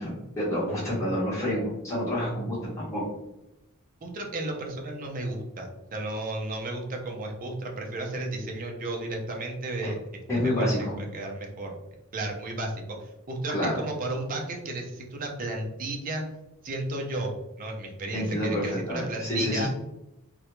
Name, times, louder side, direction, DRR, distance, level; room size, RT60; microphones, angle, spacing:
voice 1, 0.0-3.0 9.8-9.9 10.3-11.0 13.5-13.9 18.1-19.7, equal, 15° left, -8 dB, 0.8 m, -28 dB
voice 2, 4.0-10.0 10.6-11.7 12.1-12.8 13.3-16.2 16.6-17.3 17.6-19.7, right 2 dB, 40° right, 1 dB, 0.5 m, -33 dB
2.3 x 2.1 x 2.9 m, 0.91 s
head